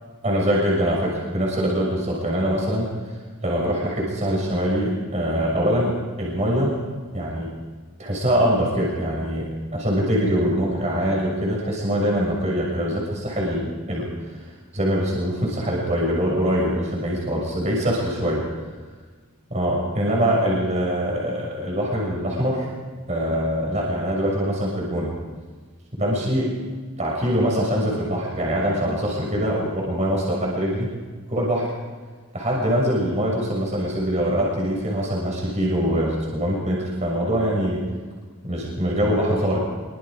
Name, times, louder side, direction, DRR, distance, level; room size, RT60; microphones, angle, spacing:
voice 1, 0.2-2.9 3.4-6.8 7.1-7.5 8.0-14.4 14.7-18.4 19.5-22.7 23.1-25.1 25.9-26.5 27.0-30.9 31.3-31.7 32.3-37.8 38.4-39.6, equal, 30° right, -2 dB, 6.5 m, -23 dB
26.0 x 24.5 x 5.1 m, 1.5 s
head